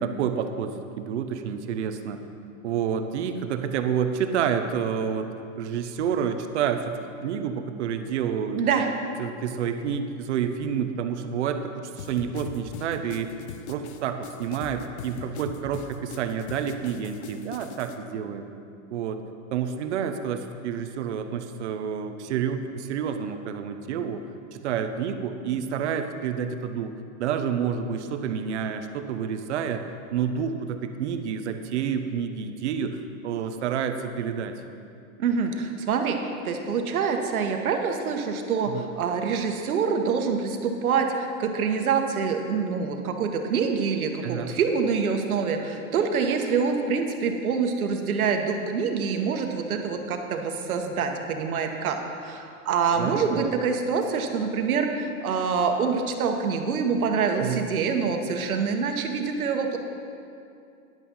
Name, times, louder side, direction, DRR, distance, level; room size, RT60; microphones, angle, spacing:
voice 1, 0.0-2.2 2.6-8.6 9.2-13.4 13.7-18.5 18.9-19.2 19.5-26.9 27.2-29.8 30.1-34.6 38.7-38.9 44.2-44.5 52.9-53.5 57.4-57.6, right 7 dB, 55° right, 8 dB, 0.8 m, -29 dB
voice 2, 8.5-8.9 35.2-36.2 36.4-59.8, right 5 dB, 90° right, 4 dB, 1.4 m, -26 dB
sound 1, 12.0-18.0, left 7 dB, 50° left, 0.7 m, -41 dB
10.5 x 8.6 x 5.5 m, 2.5 s
supercardioid pair, 165°, 42 cm